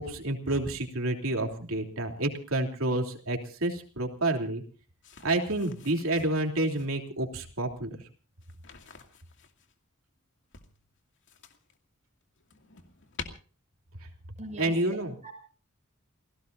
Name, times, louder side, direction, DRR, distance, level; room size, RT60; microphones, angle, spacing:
voice 1, 0.0-4.6 5.2-7.9 14.6-15.1, right 2 dB, 70° right, 3 dB, 3.2 m, -29 dB
sound 1, 5.0-7.0 8.4-9.7 10.5-11.8 12.2-13.3, left 5 dB, 60° left, 2.4 m, -48 dB
voice 2, 14.4-15.3, right 1 dB, 35° right, 4 dB, 6.5 m, -42 dB
29.0 x 17.5 x 2.7 m, 0.38 s
head